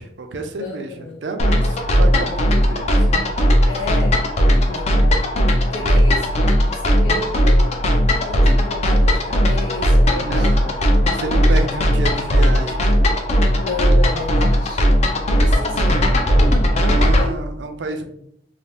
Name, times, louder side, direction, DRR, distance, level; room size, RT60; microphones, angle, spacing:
voice 1, 0.0-3.1 5.8-5.9 10.1-10.8 11.1-12.9 15.4-16.1 16.8-18.0, right 3 dB, 75° right, 5 dB, 0.5 m, -30 dB
voice 2, 0.6-1.2 3.6-5.2 5.6-7.7 8.3-10.6 11.2-11.6 13.5-14.9 15.5-16.5 17.1-17.3 18.0-18.1, left 2 dB, 90° left, -2 dB, 0.5 m, -32 dB
sound 1, 1.4-17.3, equal, 40° left, 0.4 m, -17 dB
2.7 x 2.1 x 3.3 m, 0.71 s
head